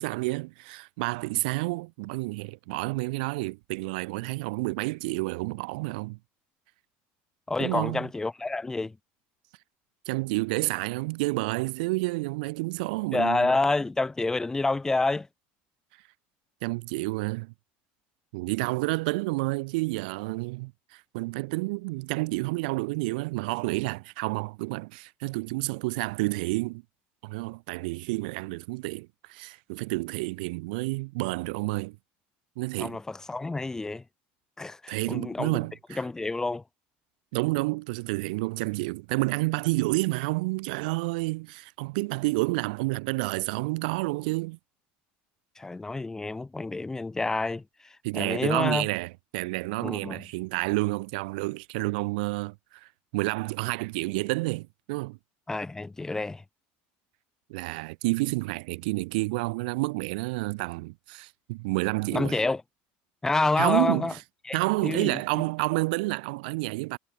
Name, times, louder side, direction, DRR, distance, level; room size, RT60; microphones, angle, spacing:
voice 1, 0.0-6.2 7.6-8.1 10.1-13.5 16.6-17.5 18.3-26.8 27.2-32.0 32.6-33.0 34.9-36.0 37.3-44.6 48.0-55.2 57.5-62.4 63.6-64.1 64.5-67.0, right 25 dB, 85° right, 1.9 m, -29 dB
voice 2, 7.5-9.0 13.1-15.3 32.8-34.0 34.6-35.6 36.0-36.6 45.6-48.9 49.8-50.2 55.5-56.4 62.1-62.6 63.2-64.1 64.5-64.6 64.8-65.2, left 3 dB, 10° left, 7.1 m, -28 dB
supercardioid pair, 125°, 5 cm